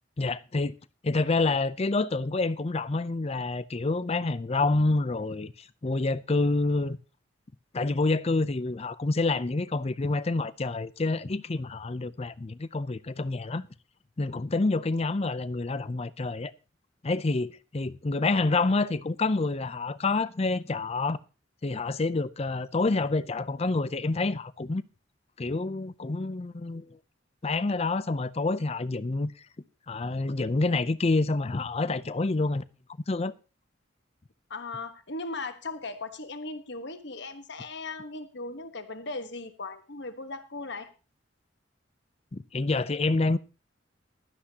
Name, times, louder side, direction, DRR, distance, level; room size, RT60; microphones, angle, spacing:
voice 1, 0.2-0.8 1.0-7.0 7.7-13.7 14.2-16.5 17.0-21.2 21.6-24.8 25.4-27.0 27.4-29.3 29.9-32.6 33.1-33.3 42.3-43.4, left 3 dB, 30° left, 0.5 m, -28 dB
voice 2, 34.5-40.9, left 3 dB, 60° left, 1.3 m, -38 dB
16.0 x 12.0 x 2.9 m
head